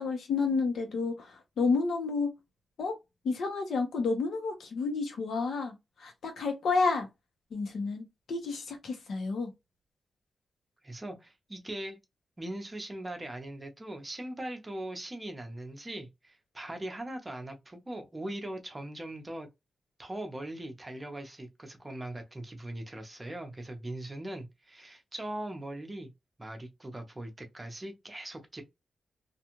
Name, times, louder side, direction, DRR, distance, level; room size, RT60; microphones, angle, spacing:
voice 1, 0.0-2.3 2.8-3.0 3.2-5.7 6.0-7.1 7.5-9.5, left 4 dB, 75° left, 0.9 m, -30 dB
voice 2, 10.8-12.0 12.4-19.5 20.0-26.1 26.4-28.6, right 1 dB, 20° right, 0.7 m, -40 dB
2.5 x 2.3 x 2.9 m
wide cardioid pair, 110°, 0 cm